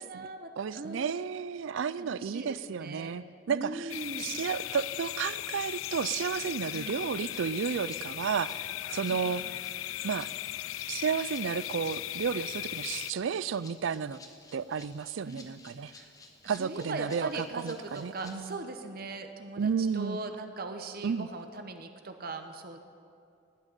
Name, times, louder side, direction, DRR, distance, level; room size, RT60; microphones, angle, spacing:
voice 1, 0.0-1.1 2.0-3.2 3.5-4.3 6.7-6.9 9.1-9.3 15.3-15.5 15.8-16.1 16.4-22.8, right 3 dB, 45° right, 7 dB, 0.8 m, -40 dB
voice 2, 0.6-3.9 4.2-9.4 10.0-10.3 10.9-14.2 14.5-15.9 16.5-18.6 19.6-20.2 21.0-21.3, right 6 dB, 70° right, 18 dB, 0.4 m, -32 dB
sound 1, 3.9-13.1, left 14 dB, 80° left, 0.3 m, -37 dB
Rattle (instrument), 6.0-18.6, left 3 dB, 15° left, 1.1 m, -55 dB
18.5 x 6.4 x 9.2 m, 2.5 s
head